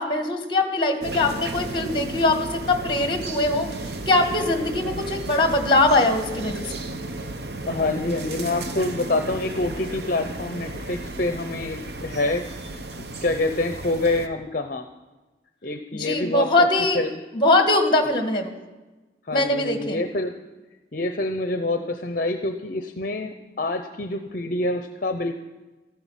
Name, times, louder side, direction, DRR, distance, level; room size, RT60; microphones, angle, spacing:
voice 1, 0.0-6.7 15.9-17.0 17.3-18.5 19.3-20.0, left 2 dB, 25° left, 6 dB, 1.7 m, -22 dB
sound 1, 1.0-14.3, right 2 dB, 65° right, 1.0 m, -34 dB
voice 2, 7.7-12.4 13.0-14.9 15.6-16.7 16.9-17.1 18.1-18.2 19.3-20.4 20.9-25.3, left 2 dB, 50° left, 7 dB, 0.7 m, -26 dB
14.0 x 11.5 x 7.3 m, 1.2 s
head